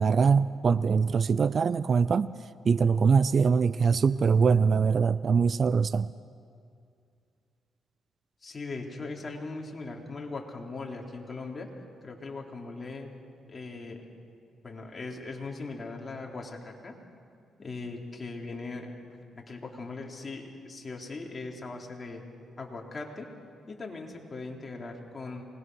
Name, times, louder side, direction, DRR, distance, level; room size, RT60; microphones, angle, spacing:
voice 1, 0.0-2.3 2.6-6.1, right 5 dB, 45° right, 17 dB, 0.5 m, -23 dB
voice 2, 8.4-11.7 12.0-13.1 13.5-14.0 14.6-17.0 17.6-18.9 19.4-22.2 22.6-23.3 23.7-25.4, left 3 dB, 30° left, 0 dB, 3.5 m, -39 dB
26.5 x 20.5 x 6.3 m, 2.4 s
cardioid pair, 90°, 0 cm